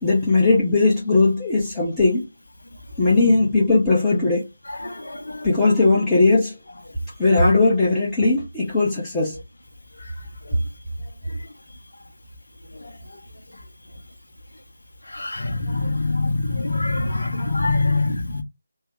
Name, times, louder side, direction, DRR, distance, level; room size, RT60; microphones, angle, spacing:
voice 1, 0.0-2.3 3.0-4.5 5.4-6.5 7.2-9.4, left 3 dB, 10° left, 0.8 m, -18 dB
voice 2, 15.2-18.4, left 3 dB, 60° left, 0.8 m, -23 dB
3.4 x 2.2 x 3.2 m
figure-of-eight pair, 160°, 0 cm